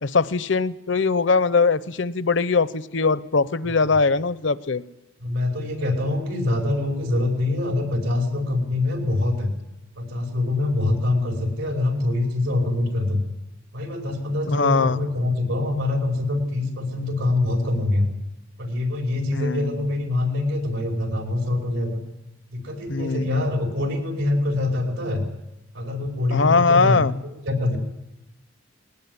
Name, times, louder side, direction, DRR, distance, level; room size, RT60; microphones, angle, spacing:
voice 1, 0.0-4.8 14.5-15.0 19.3-19.9 22.9-23.5 26.3-27.1, left 4 dB, 65° left, 15 dB, 0.8 m, -21 dB
voice 2, 5.2-9.5 10.0-13.2 13.7-18.1 18.6-22.0 22.5-25.2 25.7-27.1 27.4-27.8, left 2 dB, 85° right, 2 dB, 5.3 m, -24 dB
19.5 x 19.5 x 9.7 m, 0.92 s
head